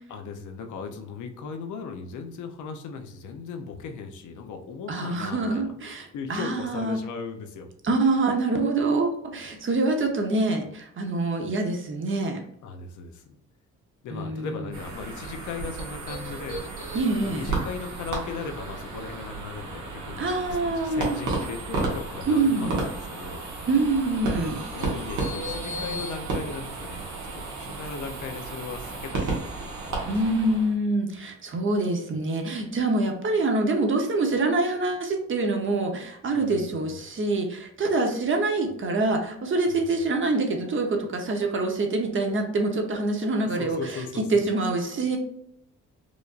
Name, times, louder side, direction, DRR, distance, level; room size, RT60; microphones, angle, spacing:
voice 1, 0.1-5.7 6.1-7.7 12.6-13.4 14.0-16.6 17.2-23.5 24.7-30.5 36.3-36.8 39.7-40.0 43.5-44.2, left 5 dB, 80° left, 5 dB, 0.7 m, -38 dB
voice 2, 4.9-7.0 7.8-12.4 14.1-14.6 16.9-17.4 20.2-21.2 22.3-22.8 23.7-24.6 30.1-43.8 44.3-45.2, right 2 dB, 40° right, 3 dB, 0.9 m, -25 dB
sound 1, 14.7-30.7, right 3 dB, 70° right, 1.4 m, -33 dB
4.9 x 2.6 x 2.5 m, 0.75 s
cardioid pair, 90°, 30 cm